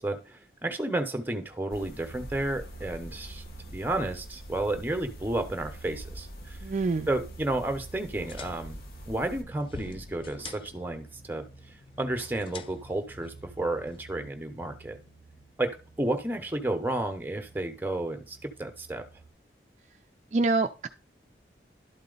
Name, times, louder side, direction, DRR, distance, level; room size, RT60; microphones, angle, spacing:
voice 1, 0.0-6.6 7.1-8.8 9.1-11.4 12.0-15.0 15.6-15.7 16.0-19.0, right 2 dB, 10° right, 7 dB, 0.8 m, -32 dB
sound 1, 1.7-9.4, equal, 60° left, 1.2 m, -45 dB
sound 2, 2.0-19.3, right 4 dB, 85° left, 2.3 m, -51 dB
voice 2, 6.6-7.1 19.9-20.0 20.3-20.9, right 3 dB, 40° right, 7 dB, 0.4 m, -26 dB
sound 3, 8.0-14.0, left 4 dB, 30° left, 0.4 m, -47 dB
11.5 x 4.1 x 3.9 m, 0.34 s
head